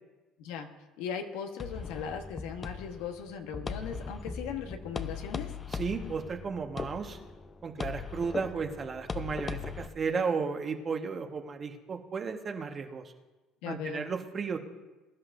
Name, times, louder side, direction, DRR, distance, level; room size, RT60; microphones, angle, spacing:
voice 1, 0.4-0.7 1.0-5.5 13.6-14.1, left 7 dB, 80° left, 5 dB, 1.2 m, -38 dB
sound 1, 1.6-9.9, left 5 dB, 30° left, 0.7 m, -39 dB
voice 2, 5.7-7.2 7.6-13.0 13.7-14.6, right 5 dB, 40° right, 5 dB, 1.4 m, -34 dB
22.0 x 11.0 x 2.6 m, 1.2 s
supercardioid pair, 75°, 0 cm